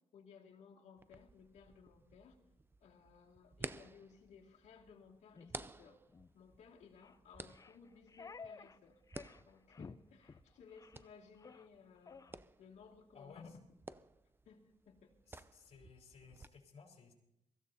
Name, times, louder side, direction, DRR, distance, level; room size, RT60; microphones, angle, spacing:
voice 1, 0.1-2.4 2.8-6.0 6.3-9.0 9.5-12.3 12.6-13.3 14.5-15.1, left 6 dB, 90° left, -1 dB, 2.1 m, -60 dB
sound 1, 1.0-16.5, right 3 dB, 20° right, 0.5 m, -54 dB
sound 2, 5.3-5.5 6.1-6.3 7.0-7.2 7.5-8.8 9.1-9.4 9.7-10.0 10.2-10.4 10.7-11.1 11.3-11.7 12.1-12.3, left 5 dB, 30° left, 0.5 m, -53 dB
voice 2, 13.1-13.5 15.3-17.1, left 5 dB, 60° left, 0 dB, 4.3 m, -58 dB
23.5 x 15.0 x 2.8 m, 0.82 s
cardioid pair, 90°, 12 cm